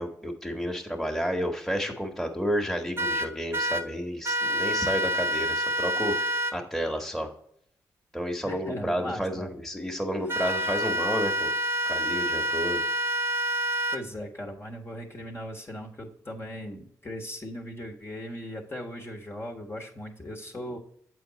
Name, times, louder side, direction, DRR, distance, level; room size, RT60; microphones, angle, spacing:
voice 1, 0.0-7.3 8.1-11.5 11.9-12.8, equal, 5° left, 1 dB, 1.3 m, -31 dB
sound 1, 3.0-3.8 4.2-6.5 10.3-14.0, equal, 30° right, 0.9 m, -27 dB
voice 2, 8.5-9.5 13.9-20.8, equal, 30° left, 0 dB, 1.3 m, -38 dB
7.0 x 4.7 x 4.0 m, 0.69 s
supercardioid pair, 55°, 8 cm